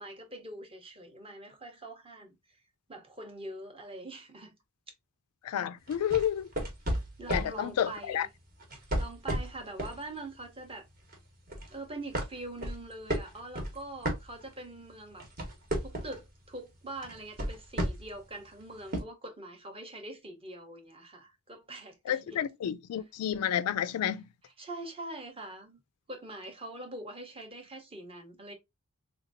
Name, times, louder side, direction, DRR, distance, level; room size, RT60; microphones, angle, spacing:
voice 1, 0.0-2.3 2.9-4.5 7.2-8.3 9.0-10.8 11.7-15.2 15.8-22.4 24.6-25.8 26.1-28.5, right 1 dB, 25° right, 0.9 m, -43 dB
voice 2, 5.4-6.5 7.3-8.3 22.1-24.2, left 10 dB, 85° left, 0.3 m, -30 dB
sound 1, 5.9-7.6 8.6-10.0 10.4-10.7 11.1-11.7 12.1-14.7 15.1-16.3 17.0-18.2 18.9-19.0, right 1 dB, 45° right, 1.2 m, -33 dB
3.4 x 2.8 x 2.5 m
head